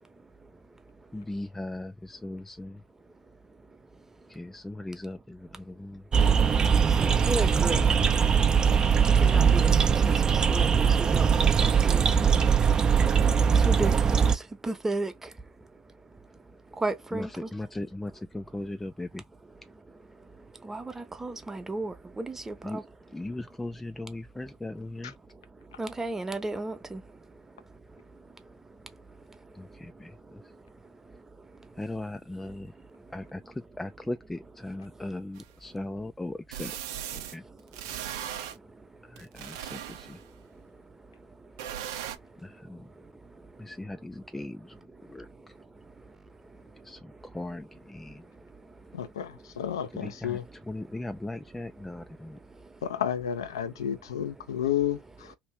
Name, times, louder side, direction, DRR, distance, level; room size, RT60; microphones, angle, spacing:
voice 1, 1.1-2.8 4.3-6.0 17.1-19.2 22.6-22.8 23.1-25.1 29.5-30.1 31.8-32.7 33.1-36.7 37.3-37.4 39.1-40.2 42.4-42.8 43.6-44.7 45.1-45.3 46.8-48.2 50.0-50.4 50.7-52.4, left 2 dB, 10° left, 0.4 m, -38 dB
sound 1, 6.1-14.3, right 6 dB, 30° right, 0.6 m, -21 dB
voice 2, 7.0-7.8 9.1-12.0 13.5-15.3 16.8-17.5 20.6-22.8 25.8-27.0, right 2 dB, 15° right, 1.0 m, -34 dB
sound 2, 35.4-35.5 36.5-37.4 37.7-38.6 39.2-40.3 41.6-42.2, right 10 dB, 75° right, 0.7 m, -37 dB
voice 3, 48.9-50.4 52.8-55.3, left 10 dB, 85° left, 0.6 m, -31 dB
3.0 x 2.6 x 3.3 m
hypercardioid pair, 75°, 2 cm